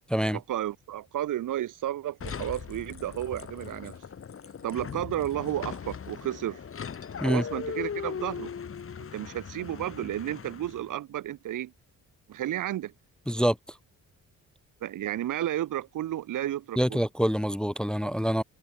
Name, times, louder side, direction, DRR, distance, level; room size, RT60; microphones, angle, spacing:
voice 1, 0.3-4.0 4.6-6.6 7.2-8.5 9.1-11.7 12.3-12.9 14.8-17.0, right 12 dB, 60° right, 0.8 m, -32 dB
sound 1, 2.2-10.9, left 7 dB, 35° left, 3.1 m, -39 dB
voice 2, 16.8-18.4, equal, ahead, 0.7 m, -26 dB
cardioid pair, 145°, 36 cm